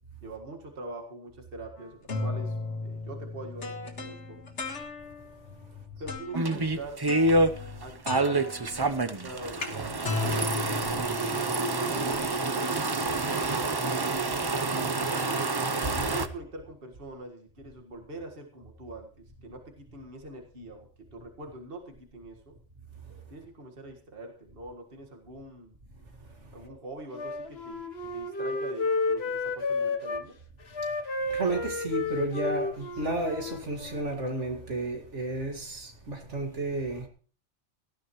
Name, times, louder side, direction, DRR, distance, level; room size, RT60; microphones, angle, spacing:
voice 1, 0.2-2.6 2.8-4.4 6.0-7.0 7.8-8.5 8.9-10.7 11.3-14.3 15.0-15.4 15.9-22.5 23.3-25.8 26.5-27.9 28.1-30.4, right 2 dB, 50° right, 2.0 m, -43 dB
sound 1, 1.8-5.4 6.1-6.5 7.1-7.8 8.1-11.6, left 3 dB, 75° left, 2.0 m, -36 dB
sound 2, 6.3-7.5 8.1-16.3, right 2 dB, 25° right, 0.7 m, -27 dB
voice 2, 7.3-7.8 16.0-16.1 31.3-37.1, right 2 dB, 75° right, 2.5 m, -32 dB
Wind instrument woodwind instrument, 27.1-30.2 30.7-34.1, left 3 dB, 60° left, 1.5 m, -32 dB
18.0 x 13.0 x 3.1 m
omnidirectional pair, 1.2 m